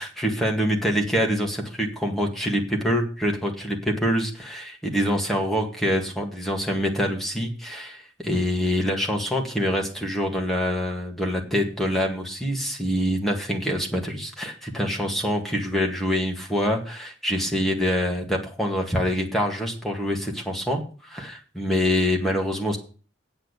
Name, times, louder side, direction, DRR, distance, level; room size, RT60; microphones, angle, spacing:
voice 1, 0.0-22.8, equal, ahead, 0 dB, 1.9 m, -25 dB
8.7 x 6.5 x 8.2 m, 0.39 s
head